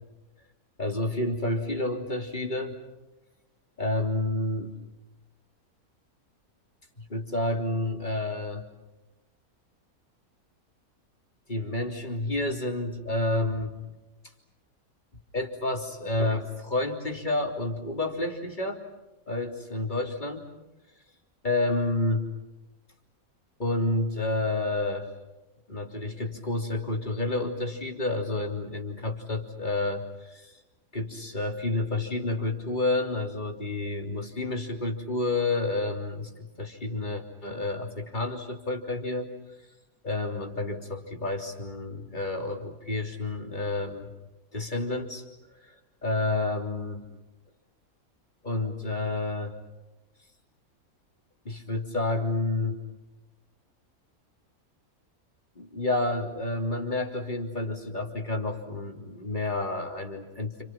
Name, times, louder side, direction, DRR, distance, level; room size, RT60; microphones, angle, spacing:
voice 1, 0.8-2.7 3.8-4.7 7.0-8.7 11.5-13.7 15.3-18.8 19.3-20.4 21.4-22.3 23.6-25.1 25.7-30.6 30.9-36.3 36.6-39.3 40.0-44.1 44.5-45.2 45.5-45.8 46.0-47.1 48.4-49.6 51.5-52.8 55.6-60.6, left 2 dB, 30° left, 2 dB, 3.4 m, -30 dB
30.0 x 28.5 x 6.0 m, 1.0 s
omnidirectional pair, 1.5 m